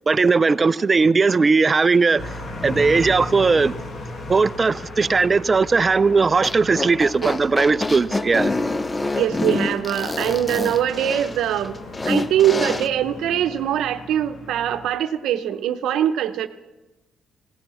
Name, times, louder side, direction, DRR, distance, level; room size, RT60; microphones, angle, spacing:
voice 1, 0.1-2.4 2.6-3.8 4.3-8.5, right 4 dB, 30° right, 0.4 m, -18 dB
sound 1, 2.2-14.9, left 2 dB, 45° left, 1.7 m, -37 dB
sound 2, 6.4-12.9, left 2 dB, 20° left, 0.6 m, -26 dB
voice 2, 9.1-11.8 12.1-16.5, right 11 dB, 80° right, 0.8 m, -22 dB
17.0 x 12.5 x 6.4 m
cardioid pair, 90°, 0 cm